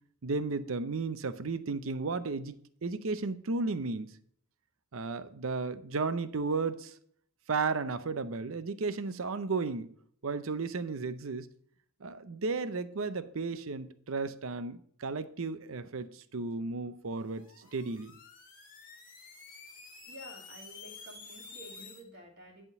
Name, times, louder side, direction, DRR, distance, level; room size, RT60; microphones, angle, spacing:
voice 1, 0.2-4.1 4.9-6.9 7.5-9.9 10.2-11.5 12.0-18.2, right 4 dB, 75° right, 0.6 m, -34 dB
sound 1, 17.2-22.0, left 5 dB, 40° left, 1.7 m, -50 dB
voice 2, 20.1-22.6, right 1 dB, 45° right, 2.5 m, -51 dB
11.0 x 3.7 x 6.7 m
head